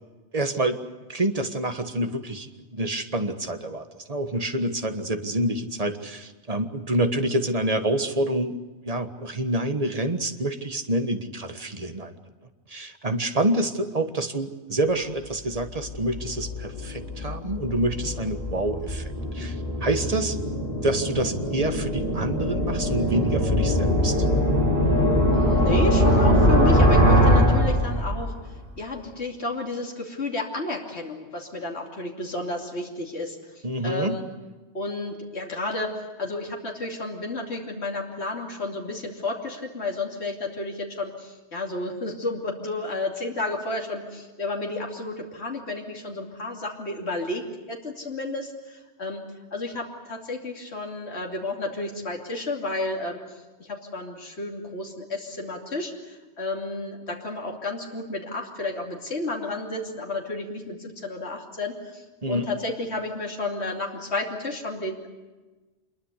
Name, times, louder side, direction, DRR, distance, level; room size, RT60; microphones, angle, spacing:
voice 1, 0.3-0.8 1.1-12.1 12.7-20.4 20.8-24.2 33.6-34.2 62.2-62.5, right 1 dB, 35° right, 7 dB, 1.6 m, -27 dB
sound 1, 15.5-28.4, equal, 40° left, 5.3 m, -22 dB
voice 2, 25.3-28.3 28.8-33.4 33.8-34.2 34.7-49.2 49.5-53.2 53.6-65.1, left 2 dB, 80° left, 0 dB, 3.1 m, -31 dB
26.0 x 22.5 x 8.3 m, 1.2 s
omnidirectional pair, 1.1 m